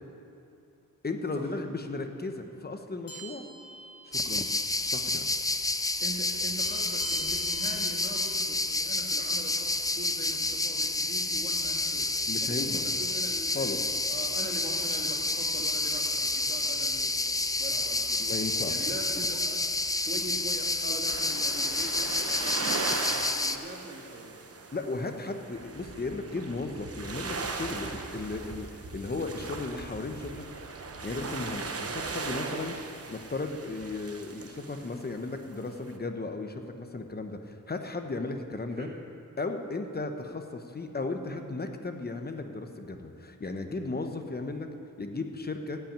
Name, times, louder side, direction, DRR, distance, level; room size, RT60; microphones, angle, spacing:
voice 1, 1.0-3.4 4.0-4.5 4.8-5.2 12.3-12.9 13.5-13.8 18.2-18.8 24.7-30.4 31.0-32.8 33.1-38.9 39.4-44.7 45.0-45.8, left 3 dB, 30° left, 5 dB, 0.9 m, -35 dB
sound 1, 3.1-4.7 5.0-5.2 6.6-8.3, right 1 dB, 75° left, 2.4 m, -45 dB
sound 2, 4.1-23.6, left 2 dB, 10° left, 0.4 m, -29 dB
voice 2, 5.8-12.1 12.4-13.7 14.1-18.3 18.6-19.7 20.0-24.4 38.7-39.0, right 1 dB, 30° right, 0 dB, 1.8 m, -42 dB
sound 3, 21.1-36.0, right 4 dB, 45° right, 0.9 m, -38 dB
14.5 x 5.8 x 8.8 m, 2.6 s
wide cardioid pair, 115°, 33 cm